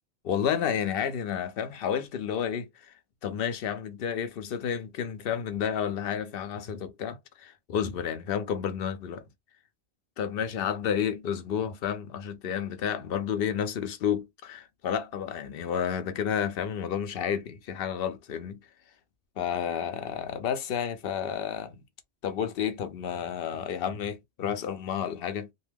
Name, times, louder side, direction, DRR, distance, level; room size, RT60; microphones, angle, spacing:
voice 1, 0.2-2.9 3.2-9.2 10.2-18.6 19.4-21.8 22.2-25.5, left 8 dB, 60° left, 0.7 m, -31 dB
2.5 x 2.3 x 3.3 m
omnidirectional pair, 1.2 m